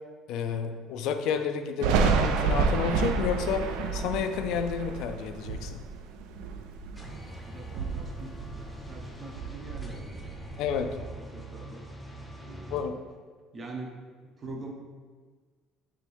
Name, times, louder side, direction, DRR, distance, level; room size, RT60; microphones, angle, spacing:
voice 1, 0.3-5.8 10.6-11.1 12.7-13.0, left 7 dB, 75° left, 8 dB, 0.3 m, -30 dB
Thunder, 1.8-7.3 7.6-9.1 9.3-11.1, right 5 dB, 90° right, 0.3 m, -29 dB
sound 1, 6.9-12.8, right 1 dB, 5° left, 0.6 m, -43 dB
voice 2, 7.4-11.9 12.3-12.9 13.5-14.0 14.2-14.7, right 2 dB, 30° right, 0 dB, 0.7 m, -44 dB
3.4 x 2.5 x 4.5 m, 1.5 s
cardioid pair, 115°, 0 cm